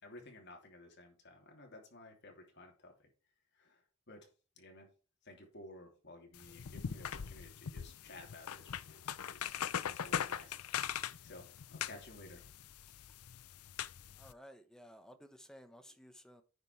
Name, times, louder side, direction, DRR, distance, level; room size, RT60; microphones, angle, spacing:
voice 1, 0.0-3.1 3.5-4.3 4.6-4.9 5.2-9.7 9.9-10.6 11.2-12.4 12.8-13.1, left 2 dB, 50° left, 3.0 m, -55 dB
sound 1, 6.3-14.3, left 8 dB, 85° left, 0.5 m, -41 dB
voice 2, 14.2-16.4, equal, 5° left, 0.9 m, -56 dB
9.7 x 5.2 x 4.4 m
head